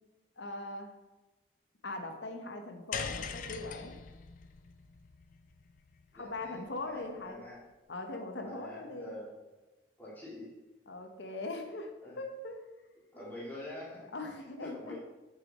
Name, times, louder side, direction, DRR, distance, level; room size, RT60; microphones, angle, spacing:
voice 1, 0.4-0.9 1.8-4.0 6.1-7.4 7.9-9.1 10.9-12.6 14.1-15.0, left 2 dB, 90° left, 5 dB, 1.0 m, -41 dB
sound 1, 2.9-7.3, left 6 dB, 45° left, 0.4 m, -43 dB
voice 2, 6.1-7.6 8.4-9.3 10.0-10.5 12.0-12.2 13.1-14.2 14.6-15.0, left 1 dB, 10° left, -8 dB, 2.1 m, -46 dB
6.1 x 5.5 x 4.0 m, 1.1 s
head